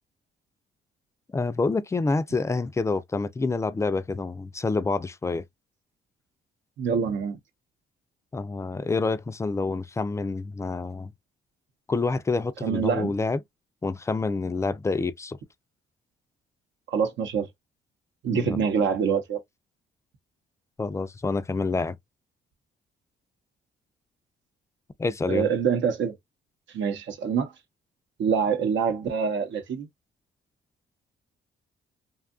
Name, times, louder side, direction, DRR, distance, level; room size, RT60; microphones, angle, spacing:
voice 1, 1.3-5.4 8.3-11.1 11.9-13.4 13.8-15.4 18.3-18.6 20.8-22.0 25.0-25.5, left 3 dB, 15° left, 0.3 m, -27 dB
voice 2, 6.8-7.4 12.6-13.1 16.9-17.5 18.2-19.4 25.3-26.1 26.7-27.5 28.2-29.9, right 6 dB, 70° right, 0.7 m, -25 dB
2.7 x 2.3 x 2.4 m
cardioid pair, 90°, 20 cm